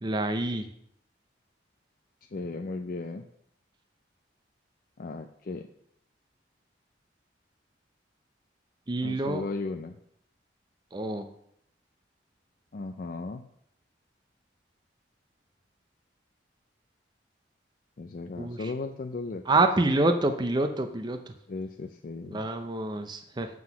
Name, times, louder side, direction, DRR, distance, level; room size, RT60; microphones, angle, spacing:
voice 1, 0.0-0.7 8.9-9.4 10.9-11.3 18.4-18.7 19.5-21.4 22.3-23.6, right 2 dB, 25° right, 7 dB, 0.5 m, -27 dB
voice 2, 2.3-3.3 5.0-5.7 9.0-10.0 12.7-13.5 18.0-19.4 21.5-22.5, left 3 dB, 45° left, 6 dB, 0.4 m, -36 dB
7.5 x 6.0 x 5.7 m, 0.71 s
head